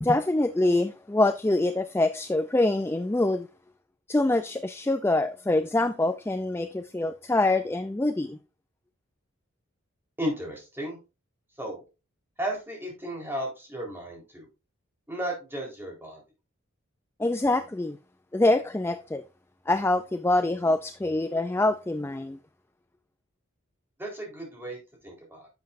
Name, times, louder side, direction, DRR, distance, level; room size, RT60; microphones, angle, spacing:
voice 1, 0.0-3.5 4.1-8.4 17.2-18.0 18.3-19.2 19.7-22.4, left 2 dB, 10° left, 0.3 m, -25 dB
voice 2, 10.2-11.0 11.6-11.8 12.4-14.5 15.1-16.2 24.0-25.5, right 1 dB, 10° right, 3.8 m, -34 dB
10.5 x 7.6 x 2.5 m
head